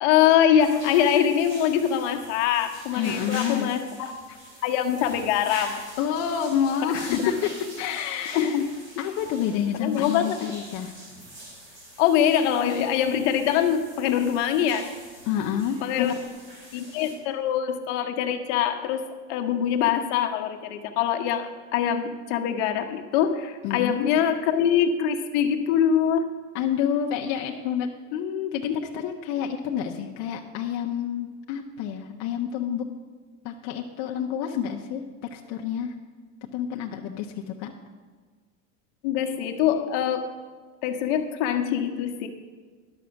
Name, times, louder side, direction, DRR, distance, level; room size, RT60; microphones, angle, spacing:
voice 1, 0.0-4.1 4.6-5.8 7.1-7.3 8.3-8.7 9.8-10.4 12.0-14.9 15.8-16.1 16.7-26.3 28.7-28.8 39.0-40.3 40.8-42.3, left 9 dB, 60° left, 5 dB, 1.1 m, -23 dB
sound 1, 0.6-17.1, right 1 dB, 30° right, 3.6 m, -44 dB
voice 2, 3.0-3.7 6.0-7.5 7.8-8.6 9.0-10.9 15.3-16.2 23.6-24.1 26.5-32.8 33.4-35.0 35.3-35.9 36.5-37.7, left 8 dB, 45° left, 1 dB, 0.8 m, -28 dB
11.0 x 6.2 x 7.0 m, 1.5 s
supercardioid pair, 145°, 40 cm